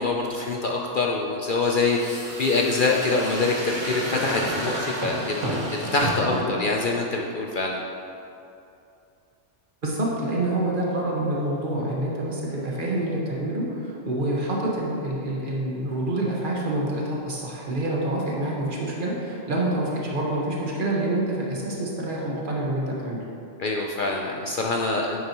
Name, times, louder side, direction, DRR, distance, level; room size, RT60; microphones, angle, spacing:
voice 1, 0.0-7.8 23.6-25.2, left 3 dB, 55° left, -1 dB, 0.7 m, -25 dB
sound 1, 1.6-6.5, right 1 dB, 85° right, 2.2 m, -31 dB
voice 2, 9.8-23.2, right 1 dB, 45° right, -4 dB, 1.6 m, -27 dB
9.5 x 8.9 x 3.0 m, 2.7 s
omnidirectional pair, 1.2 m